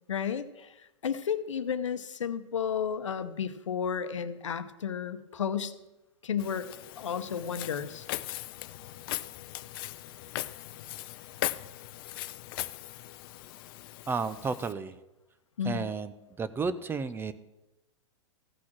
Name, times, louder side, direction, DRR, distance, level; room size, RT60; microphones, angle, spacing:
voice 1, 0.1-0.7 1.0-5.7 6.2-6.7 7.0-8.1 15.6-15.9, left 7 dB, 75° left, 11 dB, 0.9 m, -32 dB
Walk footsteps, 6.4-14.7, left 16 dB, 50° left, 0.5 m, -39 dB
voice 2, 14.1-15.0 15.6-16.1 16.4-17.3, right 4 dB, 15° right, 13 dB, 0.5 m, -32 dB
14.5 x 6.1 x 6.1 m, 0.99 s
hypercardioid pair, 105°, 16 cm